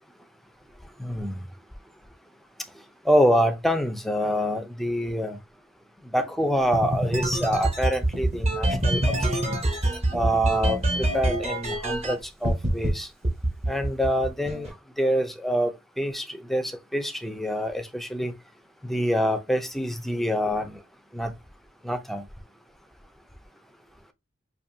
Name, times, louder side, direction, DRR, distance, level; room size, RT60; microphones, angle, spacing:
voice 1, 1.0-1.5 3.1-5.4 6.1-9.0 9.3-9.6 10.1-13.1 13.7-18.3 18.8-20.8 21.1-21.3 21.8-22.2, equal, ahead, 0.5 m, -26 dB
sound 1, 6.7-12.1 12.4-12.9 13.2-14.7, right 1 dB, 35° right, 1.0 m, -25 dB
5.1 x 2.6 x 2.6 m
head